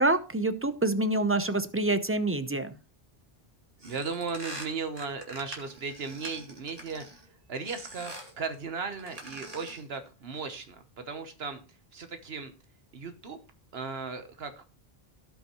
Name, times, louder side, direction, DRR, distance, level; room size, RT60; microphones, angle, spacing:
voice 1, 0.0-2.8, right 2 dB, 15° right, 11 dB, 0.6 m, -26 dB
sound 1, 3.8-7.2 7.7-8.4 8.9-9.9, right 1 dB, 35° right, 2.4 m, -44 dB
voice 2, 3.8-7.0 7.5-12.5 12.9-13.4 13.7-14.7, right 4 dB, 75° right, 8 dB, 1.2 m, -36 dB
17.0 x 5.8 x 3.0 m, 0.33 s
omnidirectional pair, 1.0 m